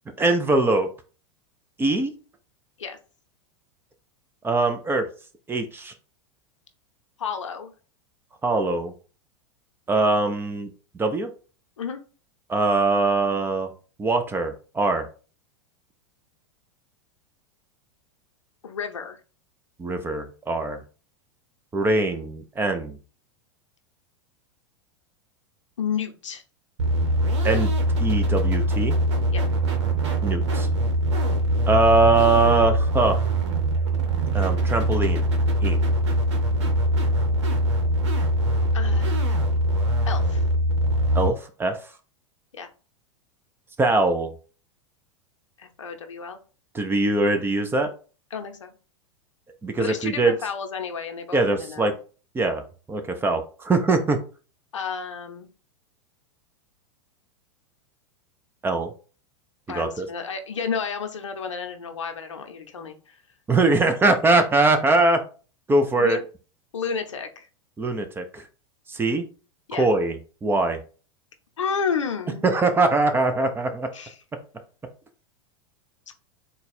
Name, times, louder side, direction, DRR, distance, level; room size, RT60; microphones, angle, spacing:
voice 1, 0.2-0.9 1.8-2.1 4.4-5.1 5.5-5.9 8.4-8.9 9.9-11.3 12.5-13.7 14.0-15.1 19.8-20.8 21.7-23.0 27.4-27.7 28.0-29.0 30.2-30.7 31.7-33.3 34.3-35.2 35.6-35.8 41.1-41.8 43.8-44.3 46.7-47.9 49.6-50.3 51.3-51.9 52.3-52.6 52.9-54.2 58.6-58.9 59.7-60.1 63.5-65.2 65.7-66.2 67.8-68.4 68.9-69.2 69.8-70.8 72.4-73.9, right 3 dB, 15° right, 7 dB, 0.7 m, -22 dB
voice 2, 7.2-7.7 11.8-12.0 18.6-19.2 25.8-26.4 29.3-29.4 38.7-39.6 40.1-40.4 42.5-42.7 45.6-46.4 48.3-48.7 49.8-52.0 54.7-55.5 59.7-63.2 65.9-66.2 66.7-67.5 69.7-69.9 71.6-72.4 73.9-74.2, left 6 dB, 85° left, 6 dB, 0.7 m, -31 dB
sound 1, 26.8-41.3, right 1 dB, 70° right, 1.1 m, -22 dB
3.9 x 2.3 x 4.2 m, 0.36 s
hypercardioid pair, 100°, 15 cm